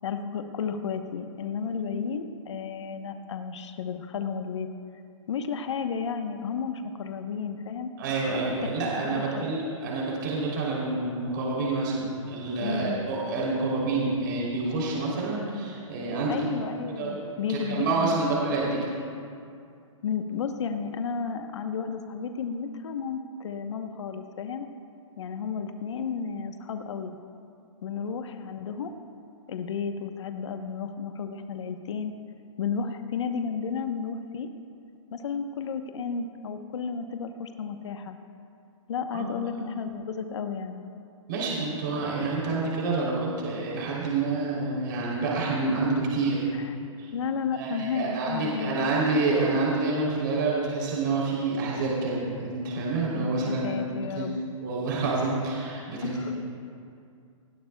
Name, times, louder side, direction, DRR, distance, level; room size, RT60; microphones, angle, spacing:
voice 1, 0.0-4.7 5.3-7.9 8.8-9.4 12.6-13.1 16.3-18.3 20.0-24.7 25.2-27.1 27.8-28.9 29.5-32.1 32.6-34.5 35.1-38.2 38.9-40.8 45.6-45.9 47.1-48.9 53.1-54.3 56.0-56.3, left 6 dB, 60° left, 7 dB, 1.0 m, -32 dB
voice 2, 8.0-16.4 17.0-17.2 17.5-18.9 39.1-39.3 41.3-46.5 47.0-47.1 47.5-53.8 54.1-54.3 54.6-56.4, right 3 dB, 40° right, -5 dB, 3.2 m, -28 dB
19.0 x 17.0 x 2.3 m, 2.4 s
hypercardioid pair, 170°, 17 cm